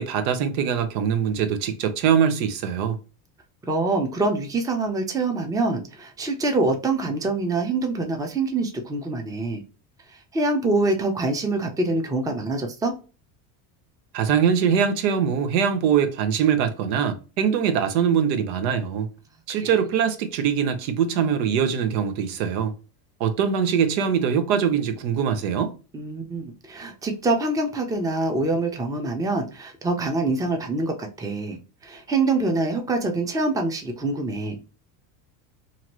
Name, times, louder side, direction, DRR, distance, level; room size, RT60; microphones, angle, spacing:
voice 1, 0.0-3.0 14.1-19.1 19.5-22.7 23.2-25.7, right 7 dB, 75° right, 0.8 m, -22 dB
voice 2, 3.7-9.6 10.1-12.9 19.6-19.7 25.9-31.6 31.8-34.6, right 2 dB, 10° right, 0.5 m, -25 dB
2.9 x 2.6 x 2.9 m
supercardioid pair, 95°, 50 cm